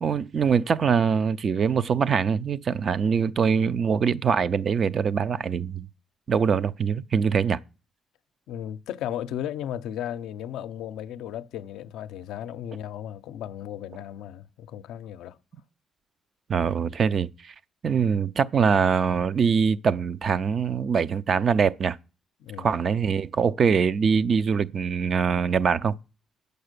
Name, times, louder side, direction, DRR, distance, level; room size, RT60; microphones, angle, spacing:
voice 1, 0.0-5.9 6.3-7.6 16.5-17.5 17.8-22.0 22.6-26.0, right 6 dB, 50° right, 0.5 m, -23 dB
voice 2, 8.5-15.4 22.4-22.7, left 11 dB, 90° left, 0.5 m, -35 dB
8.8 x 6.7 x 6.6 m
cardioid pair, 90°, 0 cm